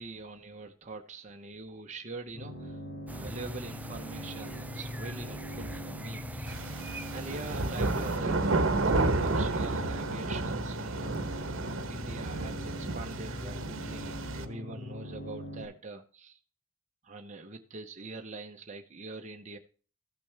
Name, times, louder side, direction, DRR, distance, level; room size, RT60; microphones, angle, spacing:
voice 1, 0.0-2.8 3.1-6.8 7.1-11.2 11.9-16.4 17.0-19.6, right 3 dB, 35° right, 3 dB, 0.9 m, -44 dB
sound 1, 2.3-15.7, left 1 dB, 60° left, 4.5 m, -42 dB
sound 2, 3.1-8.2, right 1 dB, 5° right, 0.4 m, -43 dB
sound 3, 6.5-14.4, right 2 dB, 70° right, 1.1 m, -31 dB
14.5 x 6.0 x 3.4 m, 0.39 s
head